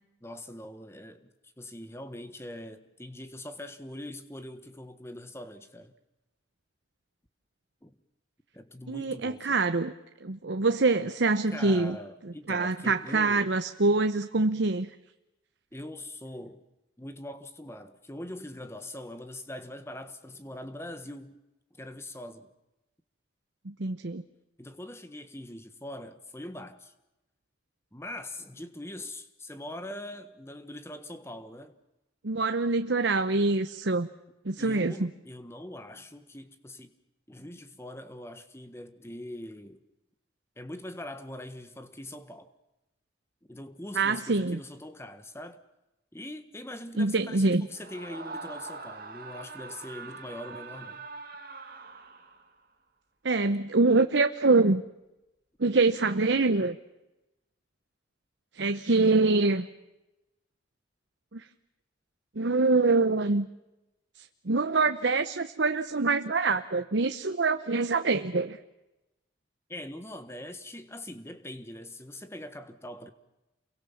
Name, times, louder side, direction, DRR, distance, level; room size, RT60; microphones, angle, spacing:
voice 1, 0.2-5.9 7.8-7.9 8.5-9.6 11.5-13.5 15.7-16.6 17.0-21.4 21.7-22.5 24.6-26.9 27.9-31.8 34.6-36.9 37.3-39.8 40.6-42.5 43.5-45.6 46.1-51.0 69.7-73.1, left 1 dB, 15° left, 1.5 m, -42 dB
voice 2, 8.9-9.9 10.2-12.0 12.5-14.9 23.6-24.2 32.2-34.1 34.4-35.1 43.9-44.6 47.0-47.7 53.2-54.8 55.6-56.8 58.5-59.7 61.3-61.4 62.4-63.5 64.2-68.6, right 3 dB, 80° right, 0.9 m, -25 dB
Screaming, 47.7-52.6, right 3 dB, 50° right, 2.6 m, -43 dB
28.5 x 23.0 x 7.2 m
head